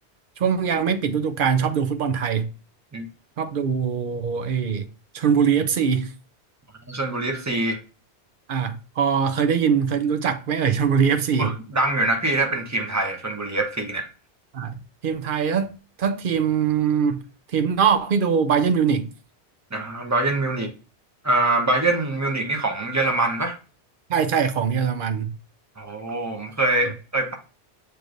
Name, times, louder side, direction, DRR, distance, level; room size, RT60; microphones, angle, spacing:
voice 1, 0.4-2.5 3.4-4.9 5.1-6.1 8.5-11.5 14.5-14.8 15.0-15.7 16.0-17.2 17.5-19.1 24.1-25.3, right 7 dB, 60° right, 0.7 m, -22 dB
voice 2, 6.9-7.8 11.4-14.1 19.7-20.7 21.2-23.6 25.8-27.3, right 2 dB, 15° right, 0.9 m, -24 dB
6.7 x 3.1 x 2.5 m
omnidirectional pair, 1.1 m